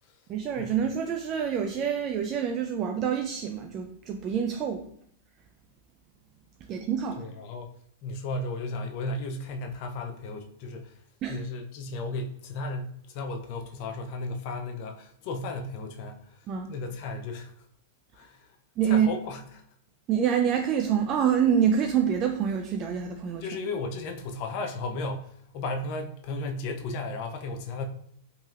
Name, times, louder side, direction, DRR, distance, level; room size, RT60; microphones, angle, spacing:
voice 1, 0.3-4.9 6.7-7.2 11.2-11.4 16.5-16.7 18.8-19.1 20.1-23.5, right 8 dB, 35° right, 4 dB, 0.3 m, -26 dB
voice 2, 7.2-7.7 8.0-10.9 11.3-17.5 18.1-18.5 18.8-19.6 23.4-27.8, left 2 dB, 50° left, 4 dB, 0.4 m, -35 dB
3.0 x 2.7 x 2.4 m, 0.67 s
hypercardioid pair, 120°, 0 cm